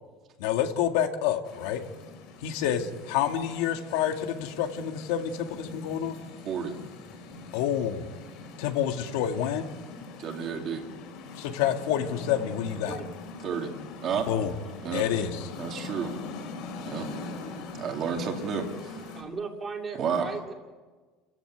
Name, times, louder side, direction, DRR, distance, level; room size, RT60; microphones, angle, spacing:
voice 1, 0.4-1.8 2.4-6.2 7.5-8.1 8.6-9.7 11.4-13.0 14.3-14.5 14.9-15.5, left 9 dB, 80° left, 5 dB, 2.1 m, -28 dB
sound 1, 1.4-19.2, left 3 dB, 50° left, 4.9 m, -43 dB
voice 2, 6.4-6.8 10.2-10.8 13.4-13.7 14.0-14.3 14.8-15.0 15.6-16.1 16.8-17.1 17.8-19.0 20.0-20.3, right 6 dB, 35° right, 3 dB, 2.6 m, -31 dB
voice 3, 19.1-20.5, right 4 dB, 15° right, 2 dB, 2.6 m, -36 dB
29.5 x 15.0 x 9.4 m, 1.4 s
cardioid pair, 180°, 0 cm